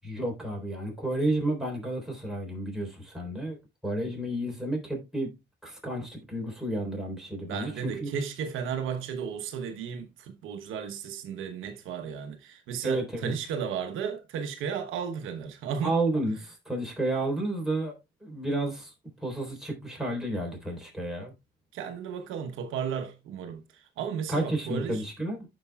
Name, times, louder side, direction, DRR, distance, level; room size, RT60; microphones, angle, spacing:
voice 1, 0.0-3.6 3.8-5.3 5.6-8.1 12.8-13.3 15.8-18.0 18.2-18.9 19.2-21.3 24.3-25.4, right 1 dB, ahead, 3.7 m, -31 dB
voice 2, 7.5-16.0 21.7-25.1, right 7 dB, 90° right, 1.0 m, -34 dB
14.5 x 5.2 x 2.3 m
cardioid pair, 90°, 20 cm